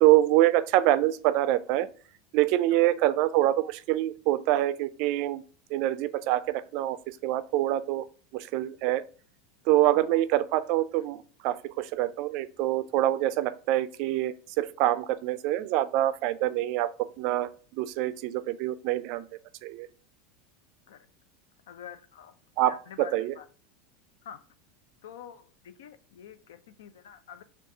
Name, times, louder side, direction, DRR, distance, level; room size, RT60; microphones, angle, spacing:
voice 1, 0.0-1.9 2.3-5.4 5.7-8.1 8.3-9.1 9.7-19.3 19.6-19.9 22.6-23.3, right 14 dB, 60° right, 14 dB, 0.3 m, -25 dB
voice 2, 21.7-22.4 22.6-23.4 24.2-24.4 25.0-27.4, left 8 dB, 85° left, 12 dB, 0.4 m, -46 dB
6.3 x 2.3 x 2.7 m, 0.42 s
supercardioid pair, 115°, 0 cm